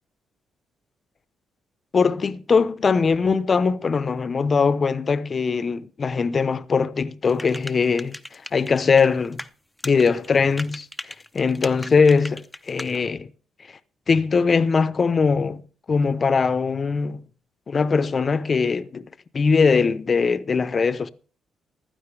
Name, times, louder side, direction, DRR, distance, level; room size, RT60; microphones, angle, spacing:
voice 1, 1.9-9.4 9.8-10.9 11.3-13.3 14.1-15.6 15.9-17.2 17.7-19.1 19.3-21.1, left 5 dB, 40° left, 0.9 m, -21 dB
sound 1, 7.3-9.5 9.8-13.0, left 1 dB, 5° left, 0.8 m, -37 dB
15.5 x 12.0 x 3.4 m
cardioid pair, 90°, 0 cm